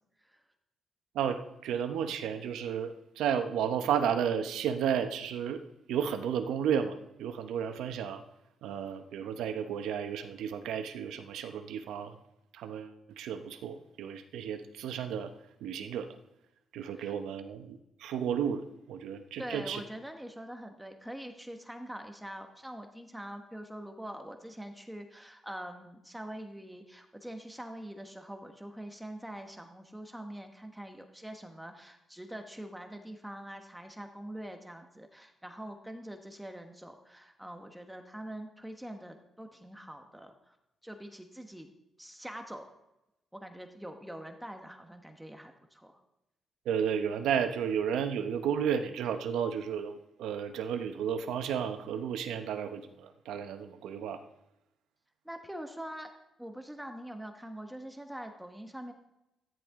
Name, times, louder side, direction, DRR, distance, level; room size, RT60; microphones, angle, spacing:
voice 1, 1.1-8.2 8.6-12.2 12.5-15.3 15.6-16.1 16.7-19.8 46.6-54.2, right 8 dB, 90° right, 8 dB, 0.9 m, -33 dB
voice 2, 19.4-40.6 40.8-41.7 42.0-42.7 43.3-46.0 55.2-56.1 56.4-58.9, right 1 dB, 5° right, 5 dB, 1.1 m, -44 dB
13.5 x 10.5 x 3.7 m, 0.91 s
cardioid pair, 100°, 0 cm